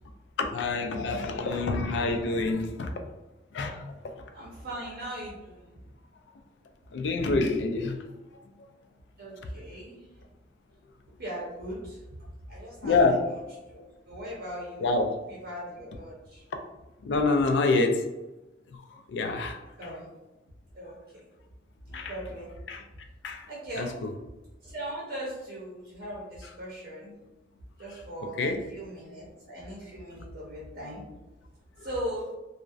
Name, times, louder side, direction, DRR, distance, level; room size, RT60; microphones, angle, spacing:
voice 1, 0.4-2.9 3.5-3.8 6.9-8.0 12.8-13.3 14.8-15.2 17.0-18.1 19.1-19.6 21.9-22.1 22.7-22.8 23.2-23.5 23.8-24.1 28.2-28.6, left 3 dB, 75° left, 5 dB, 0.3 m, -26 dB
voice 2, 4.3-5.8 9.2-10.2 11.2-12.0 12.5-13.4 13.7-16.4 19.8-20.1 20.7-21.2 21.9-22.5 23.5-24.0 24.6-27.1 27.8-31.0 31.8-32.3, right 1 dB, 55° right, -6 dB, 0.6 m, -39 dB
2.5 x 2.1 x 2.3 m, 1.0 s
head